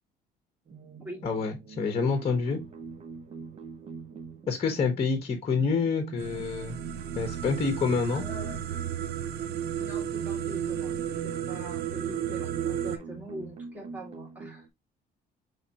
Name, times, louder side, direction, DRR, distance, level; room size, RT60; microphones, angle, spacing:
sound 1, 0.7-14.7, right 5 dB, 40° right, 0.8 m, -45 dB
voice 1, 1.2-2.6 4.5-6.8 7.2-8.2, left 5 dB, 35° left, 1.0 m, -27 dB
sound 2, 6.2-13.0, right 9 dB, 75° right, 0.6 m, -33 dB
voice 2, 8.1-8.6 9.8-11.0 11.2-14.7, equal, 10° right, 2.3 m, -43 dB
5.7 x 3.2 x 2.8 m
cardioid pair, 110°, 17 cm